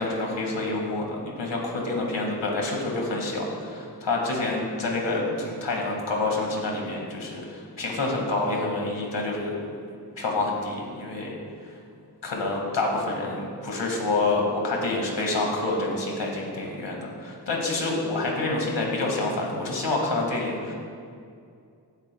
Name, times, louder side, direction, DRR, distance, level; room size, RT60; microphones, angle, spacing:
voice 1, 0.0-9.5 10.2-11.3 12.2-20.7, left 2 dB, 90° left, -1 dB, 2.0 m, -27 dB
16.5 x 8.2 x 2.3 m, 2.3 s
cardioid pair, 50°, 42 cm